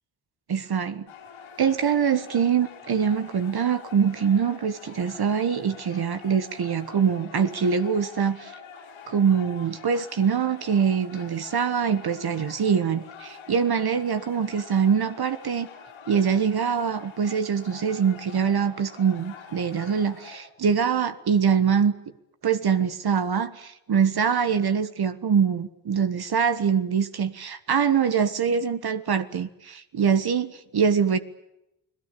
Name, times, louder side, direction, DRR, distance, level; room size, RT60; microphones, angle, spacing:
voice 1, 0.5-1.1 1.6-8.5 9.1-15.7 16.1-21.9 22.4-31.2, right 7 dB, 50° right, 10 dB, 1.4 m, -24 dB
sound 1, 1.1-20.4, left 6 dB, 90° left, 6.3 m, -45 dB
29.5 x 18.5 x 8.5 m, 0.86 s
supercardioid pair, 60°, 47 cm